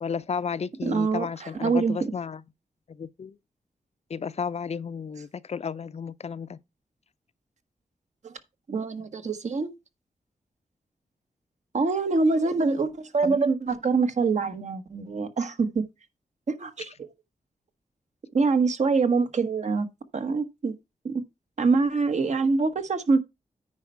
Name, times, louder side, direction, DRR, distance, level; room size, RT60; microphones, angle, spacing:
voice 1, 0.0-2.4 2.9-3.4 4.1-6.6 13.2-13.4, left 6 dB, 55° left, 0.5 m, -33 dB
voice 2, 0.8-2.1 8.2-8.4 8.7-9.7 11.7-15.8 16.5-17.1 18.3-19.9 20.1-20.7 21.0-21.1 21.6-23.2, right 4 dB, 60° right, 1.3 m, -25 dB
9.6 x 4.5 x 5.5 m
wide cardioid pair, 80°, 13 cm